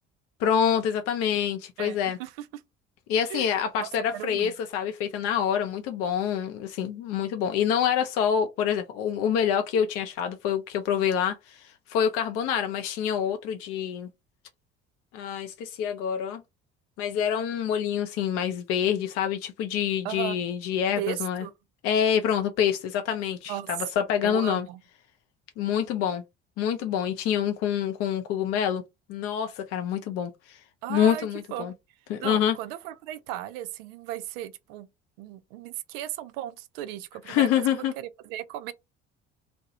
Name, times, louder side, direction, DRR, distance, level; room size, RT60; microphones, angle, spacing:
voice 1, 0.4-2.2 3.1-14.1 15.1-16.4 17.0-21.5 21.8-24.7 25.6-26.2 26.6-28.8 29.1-30.6 30.9-31.7 32.1-32.5 37.3-37.9, left 8 dB, 45° left, 0.5 m, -26 dB
voice 2, 1.8-2.5 3.3-3.5 3.8-4.5 20.0-20.4 21.0-21.5 23.5-23.7 24.2-24.8 30.8-31.7 32.2-34.9 35.2-37.6 38.0-38.7, right 12 dB, 60° right, 0.4 m, -36 dB
2.3 x 2.1 x 2.6 m
figure-of-eight pair, 55°, 33 cm